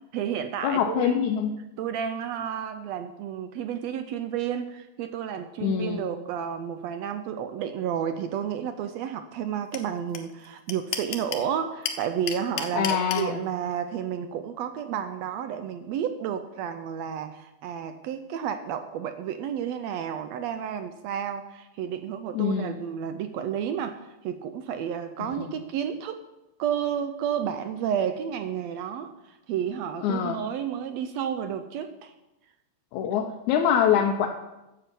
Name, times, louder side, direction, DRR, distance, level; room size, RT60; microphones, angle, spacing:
voice 1, 0.1-1.3 1.8-26.2 26.6-32.1, right 8 dB, 75° right, 9 dB, 1.6 m, -31 dB
voice 2, 0.6-1.5 5.6-6.0 12.7-13.4 22.3-22.8 25.4-25.5 30.0-30.4 32.9-34.3, left 8 dB, 85° left, 2 dB, 2.1 m, -24 dB
sound 1, 9.7-9.8 10.1-10.2 10.4-11.5 11.8-13.2, left 8 dB, 70° left, 1.9 m, -30 dB
10.0 x 7.6 x 6.8 m, 0.97 s
omnidirectional pair, 3.4 m